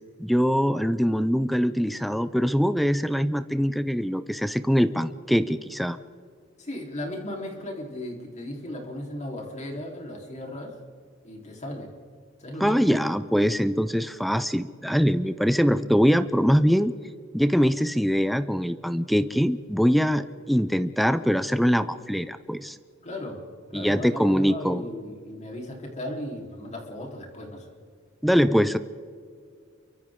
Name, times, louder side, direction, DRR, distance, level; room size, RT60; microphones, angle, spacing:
voice 1, 0.2-6.0 12.6-16.9 17.3-22.8 23.7-24.8 28.2-28.8, equal, ahead, 12 dB, 0.5 m, -23 dB
voice 2, 6.6-10.7 11.2-11.9 12.4-12.9 23.0-23.4 23.7-27.7, left 1 dB, 35° left, 0 dB, 3.8 m, -36 dB
29.0 x 24.0 x 3.7 m, 2.2 s
head